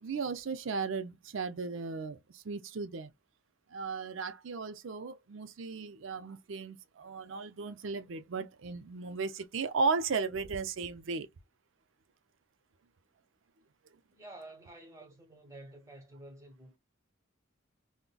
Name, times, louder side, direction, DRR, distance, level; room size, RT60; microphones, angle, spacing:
voice 1, 0.0-3.1 3.7-11.3, right 4 dB, 65° right, 0.5 m, -35 dB
voice 2, 14.1-16.8, right 1 dB, 15° right, 1.1 m, -50 dB
3.8 x 2.2 x 2.2 m
head